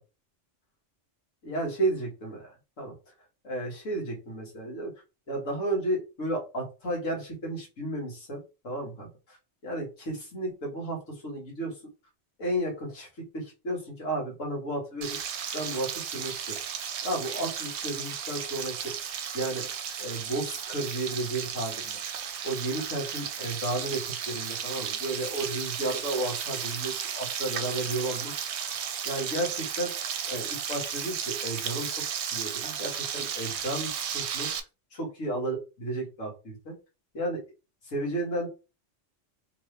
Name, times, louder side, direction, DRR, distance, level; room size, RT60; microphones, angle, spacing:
voice 1, 1.4-3.0 3.4-4.9 5.3-9.4 9.6-11.8 12.4-15.2 15.5-16.6 17.0-19.0 19.3-19.7 20.0-22.0 22.4-28.3 29.1-34.5 34.9-36.8 37.1-37.4 37.8-38.5, right 1 dB, 85° left, 0 dB, 2.0 m, -33 dB
Frying (food), 15.0-34.6, right 8 dB, 70° right, 0.8 m, -34 dB
3.5 x 3.1 x 3.3 m, 0.29 s
omnidirectional pair, 1.3 m